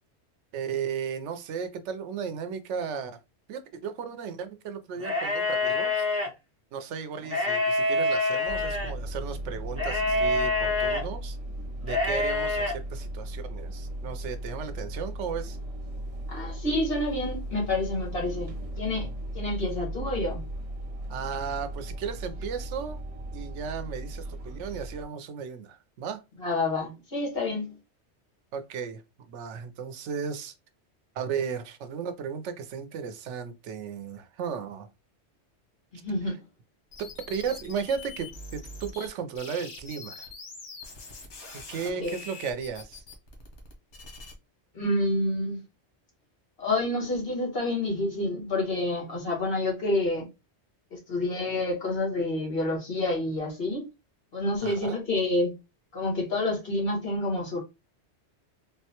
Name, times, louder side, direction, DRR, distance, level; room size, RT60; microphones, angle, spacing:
voice 1, 0.5-3.2 3.5-6.1 6.7-11.4 11.8-15.6 21.1-23.0 23.3-26.2 28.5-29.0 29.3-30.5 31.1-34.9 36.3-36.4 37.0-40.3 41.7-43.0 54.6-55.0, right 6 dB, 90° right, 0.9 m, -35 dB
sound 1, 5.0-6.3 7.2-8.9 9.8-11.0 11.8-12.7, left 2 dB, 15° right, 0.9 m, -26 dB
sound 2, 8.5-25.0, right 1 dB, 45° right, 0.5 m, -37 dB
voice 2, 16.3-19.1 19.3-20.4 26.4-27.7 36.0-36.4 41.8-42.2 44.7-45.6 46.6-50.3 50.9-53.9 54.3-55.5 55.9-57.6, left 2 dB, 55° left, 1.6 m, -28 dB
sound 3, 36.9-39.1 39.3-44.3, left 3 dB, 90° left, 1.2 m, -44 dB
3.7 x 2.2 x 2.8 m
omnidirectional pair, 1.2 m